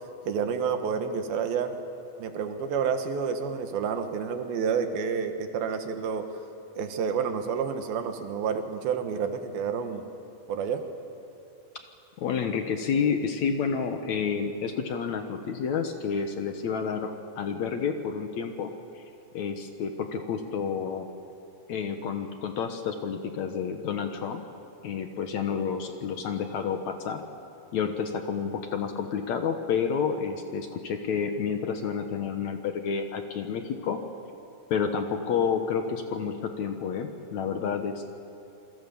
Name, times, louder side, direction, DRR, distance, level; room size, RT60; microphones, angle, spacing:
voice 1, 0.3-1.7 2.2-6.3 6.8-10.0 10.5-10.8, right 6 dB, 80° right, 6 dB, 3.3 m, -29 dB
voice 2, 12.2-17.1 17.4-18.7 19.0-19.1 19.3-21.1 21.7-24.4 24.8-27.2 27.7-34.0 34.7-38.1, left 6 dB, 60° left, 6 dB, 2.1 m, -29 dB
28.0 x 22.5 x 7.1 m, 2.8 s
omnidirectional pair, 4.2 m